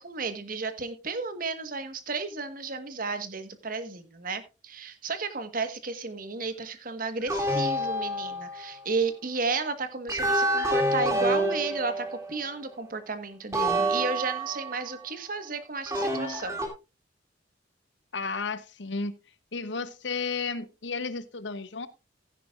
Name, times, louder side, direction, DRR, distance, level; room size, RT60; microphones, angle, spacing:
voice 1, 0.0-16.6, right 4 dB, 50° right, 10 dB, 1.4 m, -33 dB
sound 1, 7.3-8.7 10.1-12.5 13.5-14.9 15.9-16.7, right 1 dB, 15° right, 2.4 m, -28 dB
voice 2, 18.1-19.2 19.5-21.9, left 4 dB, 70° left, 15 dB, 0.9 m, -33 dB
15.0 x 10.5 x 2.4 m, 0.28 s
head